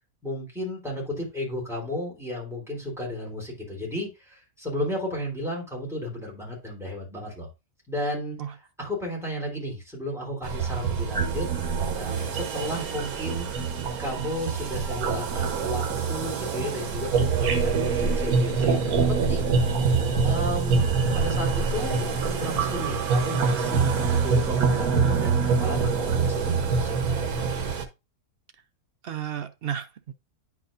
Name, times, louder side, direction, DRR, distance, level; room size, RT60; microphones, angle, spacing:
voice 1, 0.2-7.5 7.9-11.5 12.0-13.6 14.0-19.6 20.2-20.8 21.1-27.0, left 1 dB, ahead, 3.6 m, -33 dB
sound 1, 10.4-27.9, right 5 dB, 85° right, 1.4 m, -25 dB
voice 2, 29.0-30.1, right 9 dB, 60° right, 0.6 m, -33 dB
10.0 x 4.8 x 2.5 m
omnidirectional pair, 1.5 m